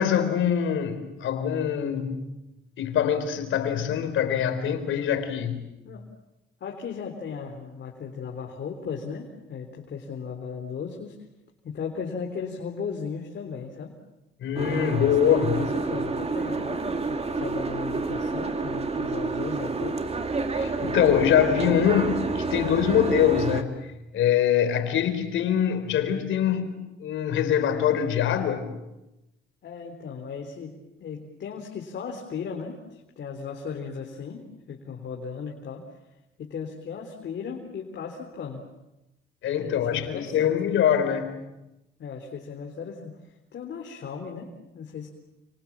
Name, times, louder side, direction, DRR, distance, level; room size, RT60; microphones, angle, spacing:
voice 1, 0.0-2.2 2.8-5.7 14.4-15.6 20.6-23.9 24.1-28.7 39.4-41.3, left 9 dB, 80° left, 4.1 m, -24 dB
voice 2, 6.6-11.2 11.6-14.0 14.9-20.0 29.6-35.9 36.4-38.7 39.5-40.5 42.0-43.2 43.5-45.1, left 6 dB, 60° left, 3.7 m, -36 dB
Boat Water vehicle, 14.6-23.6, right 3 dB, 30° right, 2.5 m, -29 dB
29.5 x 27.0 x 7.4 m
cardioid pair, 90°, 20 cm